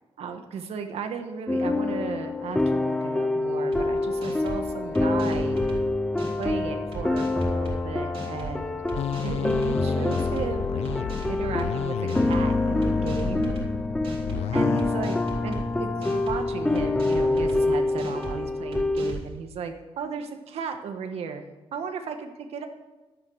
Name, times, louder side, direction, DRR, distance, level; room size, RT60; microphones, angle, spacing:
voice 1, 0.2-5.6 6.4-8.8 9.2-10.8 11.3-13.6 14.5-21.5 21.7-22.7, right 6 dB, 85° right, 6 dB, 1.4 m, -35 dB
sound 1, 1.5-19.1, left 2 dB, 5° left, 0.5 m, -26 dB
sound 2, 3.7-3.8 4.2-4.6 4.9-5.8 6.2-6.5 6.9-7.8 8.1-8.5 8.9-9.7 10.1-10.5 10.8-11.7 12.1-12.5 12.8-13.7 14.0-14.4 14.8-15.6 16.0-16.4 16.7-17.6 18.0-18.3 18.7-19.3, right 3 dB, 70° right, 3.4 m, -36 dB
sound 3, 9.0-14.8, left 10 dB, 90° left, 0.4 m, -32 dB
12.5 x 9.4 x 6.4 m, 1.2 s
wide cardioid pair, 170°, 10 cm